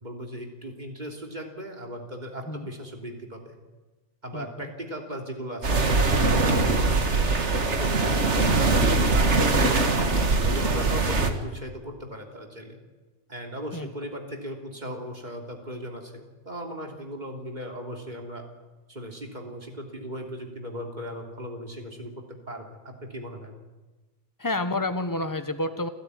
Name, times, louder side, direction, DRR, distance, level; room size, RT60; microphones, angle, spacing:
voice 1, 0.0-3.5 4.2-7.4 7.8-8.7 9.1-10.0 10.4-12.8 13.3-18.4 18.9-23.6, equal, 35° right, 2 dB, 3.3 m, -37 dB
voice 2, 4.3-4.7 13.7-13.9 24.4-25.9, left 2 dB, 15° left, 9 dB, 1.3 m, -29 dB
sound 1, 5.6-11.3, right 3 dB, 65° right, 2.1 m, -22 dB
28.5 x 13.0 x 9.7 m, 1.2 s
omnidirectional pair, 1.3 m